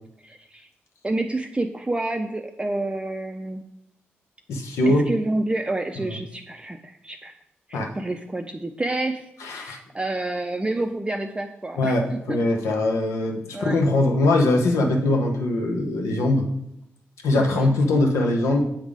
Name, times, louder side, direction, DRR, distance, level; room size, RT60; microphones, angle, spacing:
voice 1, 0.2-0.7 1.0-3.6 4.9-7.3 7.7-9.3 9.5-12.4 13.5-13.8 17.5-17.8, right 2 dB, 20° right, 5 dB, 0.5 m, -29 dB
voice 2, 4.5-5.1 6.1-6.2 7.7-7.9 9.4-9.8 11.8-16.5 17.2-18.6, left 2 dB, 85° left, 2 dB, 0.8 m, -22 dB
7.2 x 3.5 x 4.9 m, 0.80 s
supercardioid pair, 45°, 5 cm